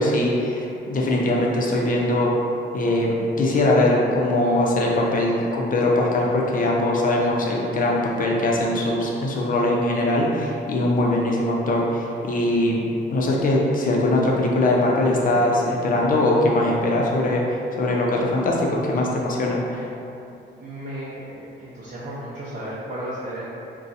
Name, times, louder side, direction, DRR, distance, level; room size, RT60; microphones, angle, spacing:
voice 1, 0.0-2.3 2.7-12.8 13.1-19.9, left 1 dB, 45° left, -2 dB, 0.6 m, -21 dB
voice 2, 20.6-23.5, right 1 dB, 45° right, -10 dB, 0.7 m, -34 dB
2.5 x 2.3 x 4.0 m, 2.7 s
cardioid pair, 90°, 20 cm